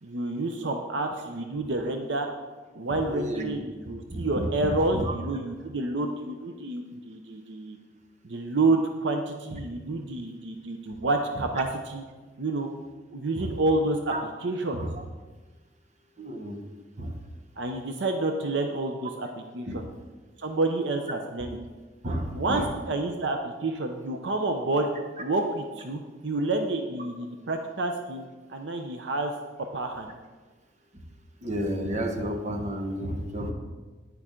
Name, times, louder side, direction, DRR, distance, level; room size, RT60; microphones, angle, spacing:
voice 1, 0.0-2.3 2.7-7.8 8.2-12.0 12.4-12.7 13.1-14.8 17.6-19.8 20.4-21.6 22.3-24.9 25.2-28.2 28.5-29.3 29.7-30.1, right 2 dB, 70° right, 4 dB, 0.7 m, -29 dB
voice 2, 3.1-3.6 4.1-5.1 9.5-9.6 13.3-13.5 14.1-14.2 14.7-14.9 16.2-16.6 17.0-17.2 19.7-19.9 22.0-22.7 31.4-33.5, right 1 dB, 40° right, 4 dB, 1.1 m, -31 dB
10.5 x 9.6 x 3.8 m, 1.3 s
head